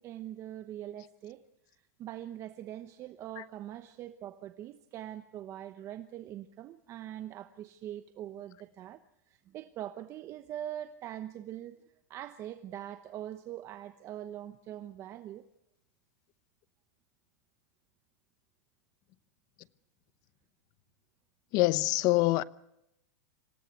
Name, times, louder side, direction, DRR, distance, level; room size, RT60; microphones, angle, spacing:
voice 1, 0.0-1.4 2.0-9.0 9.3-11.8 12.1-15.5, right 12 dB, 35° right, 1.0 m, -42 dB
voice 2, 21.5-22.4, left 19 dB, 45° left, 0.8 m, -25 dB
26.5 x 17.0 x 8.2 m
supercardioid pair, 140°, 9 cm